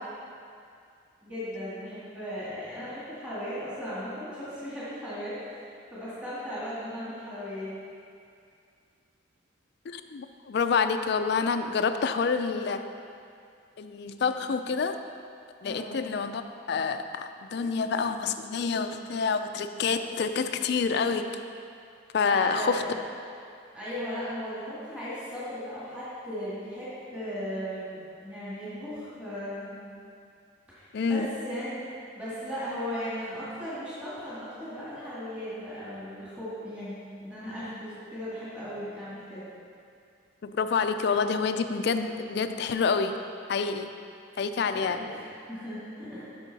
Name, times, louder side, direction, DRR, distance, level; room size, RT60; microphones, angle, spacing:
voice 1, 1.2-5.7 5.9-7.7 15.6-16.0 22.2-23.0 23.7-29.8 30.7-31.8 32.2-39.5 44.7-46.3, equal, 5° right, -11 dB, 1.9 m, -37 dB
voice 2, 9.9-12.9 13.8-15.0 15.6-16.4 16.7-21.3 22.1-22.8 30.9-31.3 40.4-43.2 43.5-43.9 44.4-45.1, left 5 dB, 55° left, 8 dB, 0.3 m, -27 dB
8.1 x 6.4 x 4.1 m, 2.4 s
head